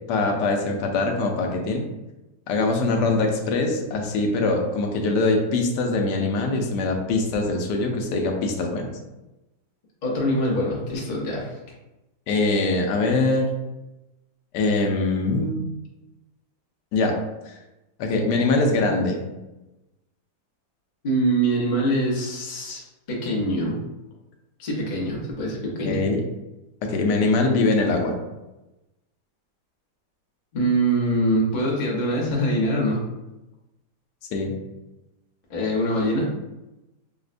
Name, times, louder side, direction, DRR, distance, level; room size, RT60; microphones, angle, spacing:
voice 1, 0.1-1.9 2.5-8.9 12.3-13.5 14.5-15.6 16.9-17.2 18.0-19.2 25.8-26.2 26.9-28.1 34.3-34.6, left 3 dB, 80° left, 2 dB, 1.2 m, -22 dB
voice 2, 10.0-11.6 21.0-22.8 23.1-23.8 24.6-26.0 30.5-33.0 35.5-36.3, right 1 dB, 40° left, -3 dB, 0.6 m, -24 dB
5.1 x 2.1 x 2.4 m, 0.99 s
omnidirectional pair, 1.8 m